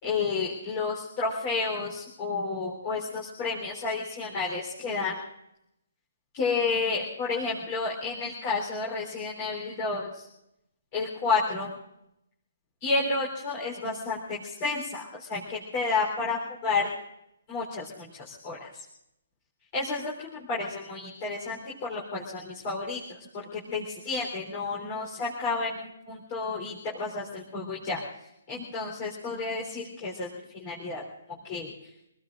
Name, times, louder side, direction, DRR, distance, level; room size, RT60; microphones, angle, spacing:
voice 1, 0.0-5.1 6.3-10.1 10.9-11.7 12.8-15.0 15.3-16.9 17.5-17.8 18.3-18.6 19.7-21.6 21.9-23.0 23.3-28.0 28.5-30.3 30.6-31.0 31.4-31.7, left 4 dB, 25° left, -3 dB, 3.9 m, -30 dB
27.0 x 19.0 x 2.6 m, 0.82 s
hypercardioid pair, 165°, 0 cm